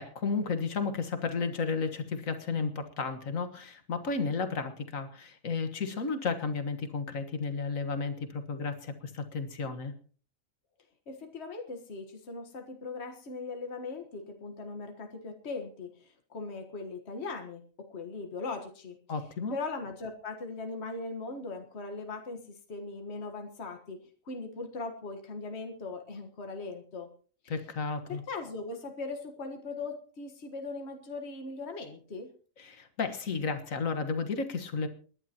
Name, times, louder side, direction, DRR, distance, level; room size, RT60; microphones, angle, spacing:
voice 1, 0.0-9.9 19.1-19.6 27.5-28.2 32.6-34.9, left 4 dB, 80° left, 8 dB, 1.9 m, -33 dB
voice 2, 11.1-19.0 19.5-27.1 27.4-27.5 28.1-32.3, left 3 dB, 55° left, 4 dB, 1.8 m, -39 dB
28.0 x 11.0 x 2.9 m, 0.41 s
omnidirectional pair, 1.4 m